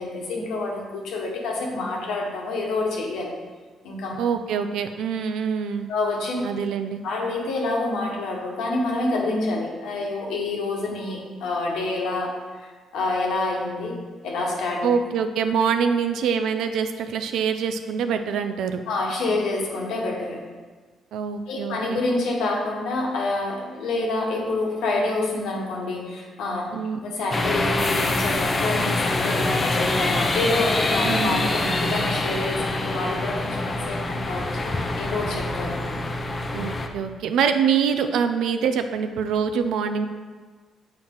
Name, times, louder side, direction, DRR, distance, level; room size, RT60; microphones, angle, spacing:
voice 1, 0.0-3.3 3.8-4.1 5.9-6.4 7.0-14.8 18.9-20.4 21.5-26.7 27.0-35.7, left 2 dB, 85° left, -1 dB, 1.3 m, -27 dB
voice 2, 4.2-5.9 6.4-7.0 14.8-18.8 21.1-22.0 26.7-27.0 31.0-31.4 36.5-40.1, right 6 dB, 80° right, 8 dB, 0.4 m, -24 dB
sound 1, 27.3-36.9, left 2 dB, 30° left, 0.6 m, -25 dB
7.1 x 4.4 x 3.8 m, 1.4 s
cardioid pair, 90°, 0 cm